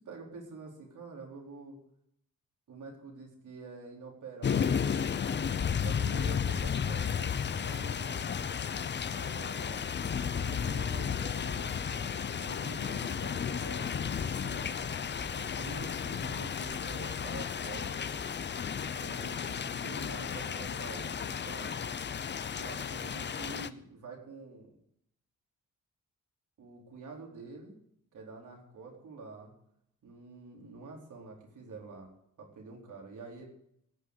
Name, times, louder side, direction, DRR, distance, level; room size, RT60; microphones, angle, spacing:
voice 1, 0.0-1.8 2.7-4.9 5.6-8.2 9.1-9.8 10.3-14.8 15.4-18.2 18.9-21.8 22.5-24.7 26.6-27.7 28.1-29.5 30.0-32.1 32.4-33.5, right 4 dB, 75° right, 0 dB, 4.5 m, -47 dB
sound 1, 4.4-23.7, left 7 dB, 35° left, 0.6 m, -33 dB
sound 2, 13.8-19.2, left 1 dB, 5° left, 1.1 m, -53 dB
16.5 x 6.4 x 8.1 m, 0.71 s
wide cardioid pair, 145°, 31 cm